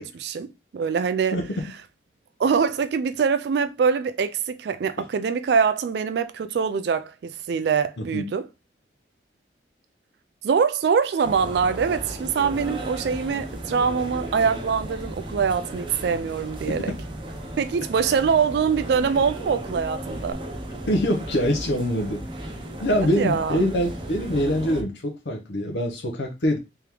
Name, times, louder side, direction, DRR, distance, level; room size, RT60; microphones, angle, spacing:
voice 1, 0.0-1.4 2.4-8.5 10.4-16.9 17.6-20.4 23.0-23.7, right 6 dB, 70° right, 0.3 m, -24 dB
sound 1, 11.2-24.8, right 1 dB, 25° right, 0.6 m, -35 dB
voice 2, 20.9-22.2 22.8-26.6, equal, 80° left, 0.8 m, -24 dB
3.5 x 3.4 x 3.0 m
head